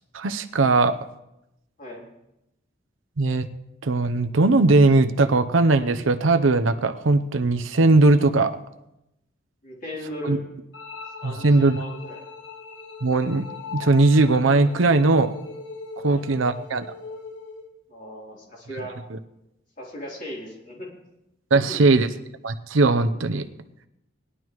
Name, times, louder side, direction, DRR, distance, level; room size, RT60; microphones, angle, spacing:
voice 1, 0.1-1.0 3.2-3.5 3.8-8.5 10.2-10.4 11.2-11.8 13.0-13.5 13.7-15.3 16.0-16.8 21.5-22.1 22.4-23.5, right 3 dB, 85° right, 9 dB, 0.7 m, -19 dB
voice 2, 9.6-10.4 11.2-12.2 16.0-16.2 17.9-18.9 19.8-20.9 21.5-21.8, equal, 45° left, -3 dB, 3.4 m, -36 dB
sound 1, 10.7-17.7, left 4 dB, 70° left, 1.3 m, -40 dB
20.0 x 11.0 x 3.1 m, 0.88 s
head